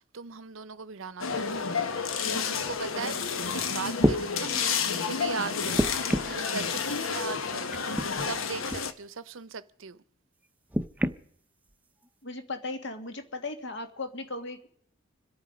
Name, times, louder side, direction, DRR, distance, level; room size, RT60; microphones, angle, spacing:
voice 1, 0.0-5.8 6.2-10.0, right 5 dB, 80° right, 0.8 m, -39 dB
sound 1, 1.2-8.9, left 6 dB, 90° left, 1.1 m, -30 dB
sound 2, 3.5-3.6 4.0-4.2 5.7-6.4 7.7-8.1 8.7-8.9 10.7-11.2 12.1-12.2, equal, 10° right, 0.6 m, -27 dB
voice 2, 12.2-14.7, left 2 dB, 60° left, 1.9 m, -37 dB
26.5 x 8.9 x 5.2 m
head